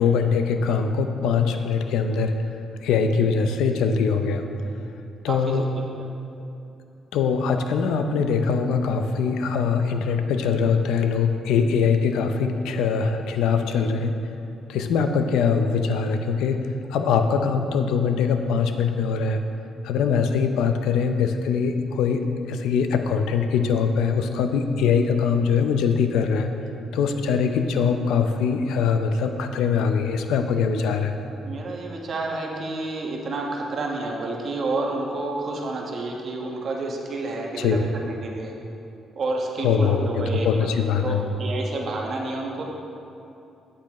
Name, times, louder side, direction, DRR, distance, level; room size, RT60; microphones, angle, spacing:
voice 1, 0.0-2.5 2.8-4.4 5.2-5.6 7.1-14.2 14.7-19.4 19.8-26.5 26.9-31.1 37.6-37.8 39.6-41.2, left 6 dB, 85° left, 7 dB, 0.5 m, -22 dB
voice 2, 5.3-5.6 6.0-6.1 13.5-13.6 27.3-27.6 31.4-38.6 39.1-40.7 41.0-42.6, right 2 dB, 55° right, 0 dB, 1.2 m, -30 dB
8.4 x 8.2 x 3.1 m, 2.7 s
cardioid pair, 90°, 0 cm